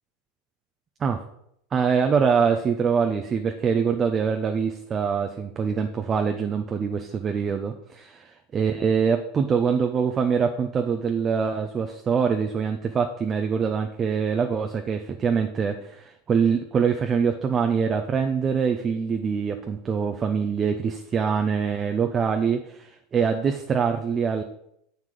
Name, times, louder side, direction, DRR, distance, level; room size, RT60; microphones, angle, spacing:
voice 1, 1.7-8.3 8.5-24.4, right 6 dB, 30° right, 6 dB, 0.7 m, -24 dB
7.3 x 6.0 x 6.7 m, 0.75 s
figure-of-eight pair, 85°, 0 cm